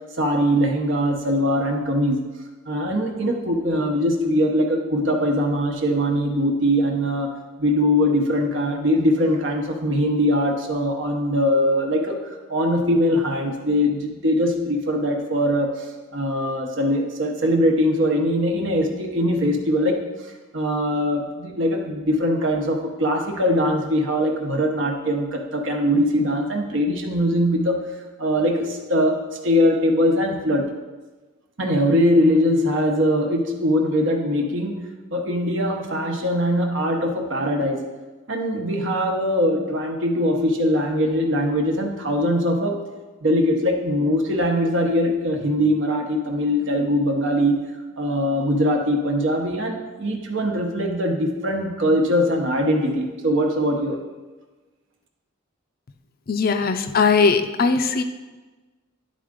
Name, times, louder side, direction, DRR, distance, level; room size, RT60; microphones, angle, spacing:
voice 1, 0.2-2.3 2.7-7.3 7.6-20.0 20.5-27.9 28.2-30.7 31.6-34.8 35.1-37.8 38.3-42.8 43.2-47.6 48.0-54.0, equal, 65° right, 3 dB, 1.0 m, -21 dB
voice 2, 56.3-58.0, left 4 dB, 45° left, 8 dB, 0.4 m, -19 dB
11.0 x 3.8 x 3.7 m, 1.3 s
head